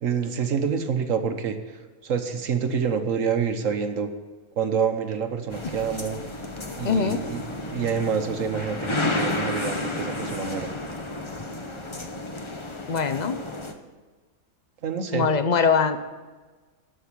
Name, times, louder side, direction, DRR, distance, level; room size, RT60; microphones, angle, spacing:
voice 1, 0.0-4.1 4.6-6.2 6.8-7.4 7.7-10.7 14.8-15.3, right 6 dB, 65° right, 7 dB, 1.3 m, -27 dB
sound 1, 5.5-13.7, left 2 dB, 25° left, 0.8 m, -32 dB
voice 2, 6.8-7.2 12.9-13.4 15.1-16.0, left 5 dB, 50° left, 10 dB, 0.5 m, -22 dB
13.0 x 6.2 x 8.3 m, 1.3 s
omnidirectional pair, 1.5 m